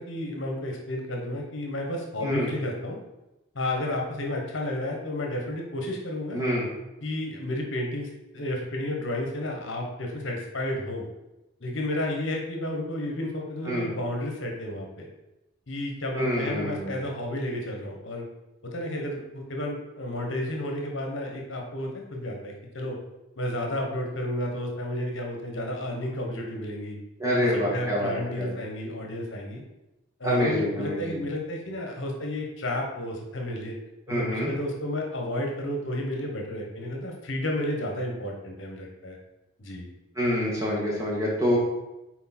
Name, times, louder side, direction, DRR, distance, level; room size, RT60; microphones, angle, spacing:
voice 1, 0.0-3.0 3.5-6.4 7.0-8.1 8.3-11.1 11.6-15.1 15.7-18.3 18.6-23.0 23.4-27.0 27.7-29.6 30.2-33.7 34.1-39.2 39.6-39.9, left 1 dB, 65° left, 1 dB, 1.3 m, -32 dB
voice 2, 2.2-2.5 6.3-6.7 13.6-13.9 16.2-16.9 27.2-28.6 30.2-31.1 34.1-34.5 40.2-41.6, equal, 15° right, -5 dB, 1.9 m, -26 dB
6.6 x 4.5 x 4.4 m, 0.98 s
head